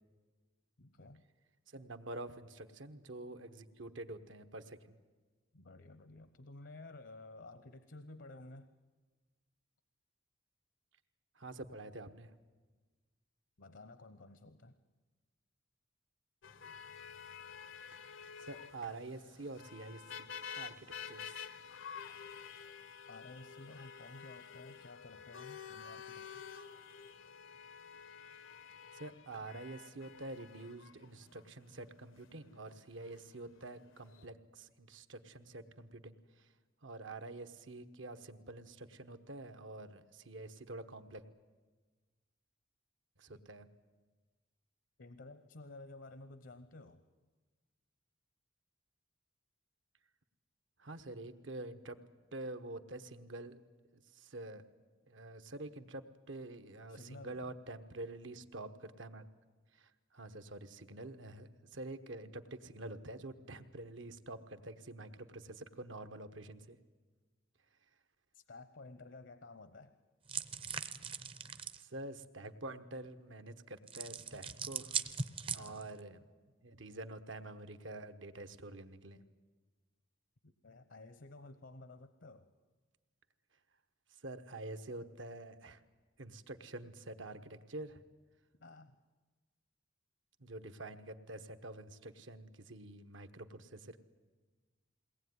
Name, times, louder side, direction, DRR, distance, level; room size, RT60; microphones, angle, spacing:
voice 1, 0.8-1.3 5.5-8.7 13.6-14.7 23.1-26.7 45.0-47.0 56.9-57.6 68.3-70.0 75.5-75.8 80.4-82.5 88.6-89.0, left 2 dB, 65° left, 11 dB, 0.9 m, -53 dB
voice 2, 1.7-5.0 11.4-12.3 18.0-21.5 28.9-36.1 36.8-41.2 43.2-43.7 50.8-52.0 52.3-53.6 53.9-54.6 55.1-59.2 59.8-66.8 71.8-75.0 75.5-76.2 76.6-79.2 84.2-85.8 86.2-88.0 90.4-94.0, right 2 dB, 70° right, 9 dB, 1.2 m, -47 dB
sound 1, 16.4-34.3, left 7 dB, 80° left, 1.0 m, -50 dB
sound 2, 70.3-71.8 73.9-76.0, right 6 dB, 25° right, 0.7 m, -40 dB
22.0 x 18.5 x 9.5 m, 1.4 s
head